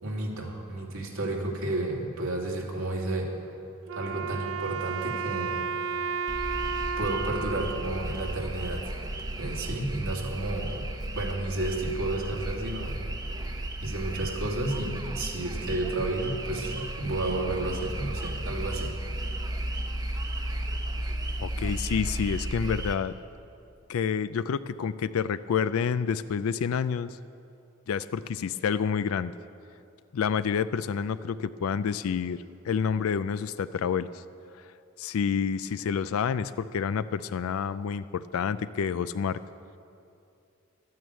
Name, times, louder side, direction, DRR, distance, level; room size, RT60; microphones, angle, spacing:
voice 1, 0.0-3.3 3.9-5.6 7.0-9.1 9.4-10.8 11.1-12.9 13.8-18.9, right 2 dB, 90° right, -1 dB, 2.5 m, -32 dB
Wind instrument woodwind instrument, 3.9-9.0, right 5 dB, 65° right, 0.3 m, -33 dB
sound 1, 6.3-23.0, right 1 dB, 20° right, 0.7 m, -34 dB
voice 2, 21.4-23.1 23.9-27.2 27.9-29.3 30.1-34.2 34.6-34.7 35.0-39.4, left 7 dB, 90° left, 14 dB, 0.4 m, -28 dB
12.5 x 9.4 x 8.2 m, 2.6 s
head